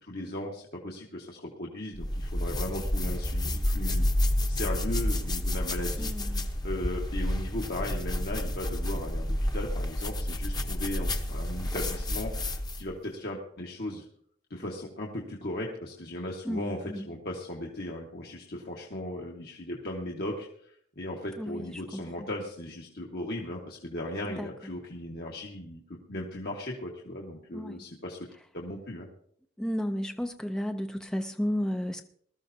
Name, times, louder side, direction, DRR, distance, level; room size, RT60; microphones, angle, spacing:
voice 1, 0.0-4.1 4.5-14.0 14.5-28.2 28.5-29.1, left 1 dB, 60° left, 1.7 m, -37 dB
sound 1, 1.9-12.9, left 1 dB, 25° left, 0.9 m, -30 dB
voice 2, 6.0-6.5 16.4-17.0 21.4-22.3 24.4-24.5 27.5-27.8 29.6-32.0, equal, 5° left, 0.5 m, -33 dB
20.5 x 13.5 x 2.8 m
head